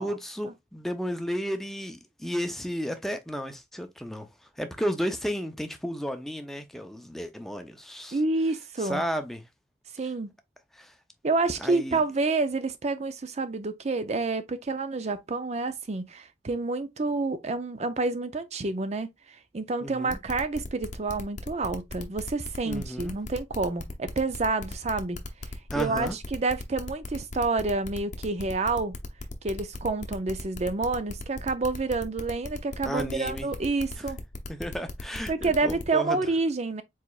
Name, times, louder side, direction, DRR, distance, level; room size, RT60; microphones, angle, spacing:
voice 1, 0.0-4.3 4.6-8.2 8.8-9.4 10.8-10.9 11.6-12.0 19.8-20.2 22.6-23.2 25.7-26.2 32.9-33.5 34.5-36.3, equal, ahead, 0.6 m, -33 dB
voice 2, 8.1-9.0 9.9-10.3 11.2-19.1 19.5-25.2 25.7-29.0 29.4-34.2 35.3-36.8, right 3 dB, 40° right, 0.5 m, -28 dB
sound 1, 20.1-35.8, left 2 dB, 45° left, 0.8 m, -38 dB
4.8 x 4.2 x 2.4 m
head